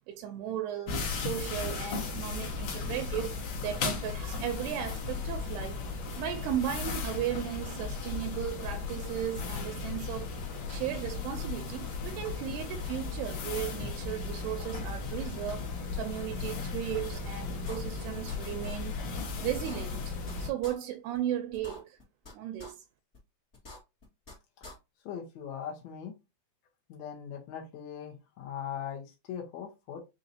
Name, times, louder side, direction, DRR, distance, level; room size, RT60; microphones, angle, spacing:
voice 1, 0.1-5.8 6.2-10.3 10.7-19.0 19.4-22.0 22.3-22.8, right 11 dB, 85° right, 2.5 m, -36 dB
sound 1, 0.9-20.5, left 4 dB, 65° left, 1.9 m, -36 dB
sound 2, 17.1-17.2 17.6-18.3 18.6-18.8 19.1-19.2 19.5-20.3 20.6-20.7 21.1-21.2 21.5-22.3 22.6-22.7 23.1-23.2 23.5-24.3 24.6-24.7, left 2 dB, 50° left, 0.8 m, -46 dB
voice 2, 25.0-26.1 26.9-30.0, left 8 dB, 80° left, 1.5 m, -40 dB
6.3 x 2.7 x 2.7 m
omnidirectional pair, 4.7 m